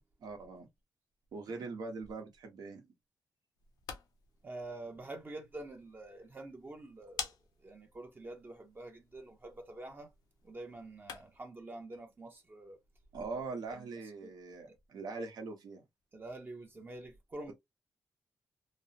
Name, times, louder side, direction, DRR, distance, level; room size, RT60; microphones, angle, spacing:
voice 1, 0.2-0.7 1.3-2.9 13.1-15.8, right 3 dB, 85° right, 1.0 m, -42 dB
sound 1, 3.5-11.5, left 6 dB, 90° left, 0.6 m, -49 dB
voice 2, 4.4-7.3 7.6-10.1 10.4-12.8 13.3-13.4 13.7-13.9 14.2-14.3 14.7-14.8 16.1-17.5, right 2 dB, 30° right, 0.6 m, -47 dB
3.0 x 2.0 x 2.7 m
cardioid pair, 100°, 7 cm